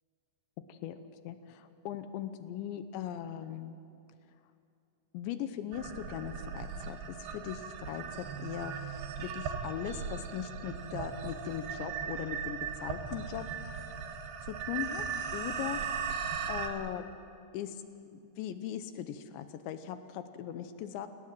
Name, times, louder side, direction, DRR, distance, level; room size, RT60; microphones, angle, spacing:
voice 1, 0.7-3.8 5.1-13.5 14.4-15.1 15.3-15.8 16.5-17.1 17.5-17.8 18.1-21.1, left 10 dB, 80° left, 10 dB, 2.8 m, -39 dB
sound 1, 5.7-16.7, right 6 dB, 65° right, 2.8 m, -38 dB
28.0 x 18.0 x 7.7 m, 2.5 s
omnidirectional pair, 5.9 m